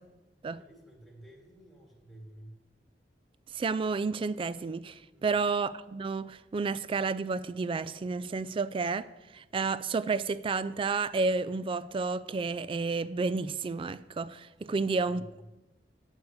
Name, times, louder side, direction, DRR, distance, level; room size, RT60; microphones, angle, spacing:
voice 1, 0.5-2.6 5.1-5.3 14.6-15.5, right 1 dB, ahead, 2.0 m, -52 dB
voice 2, 3.5-15.2, right 4 dB, 30° right, 0.3 m, -31 dB
8.1 x 7.0 x 6.5 m
head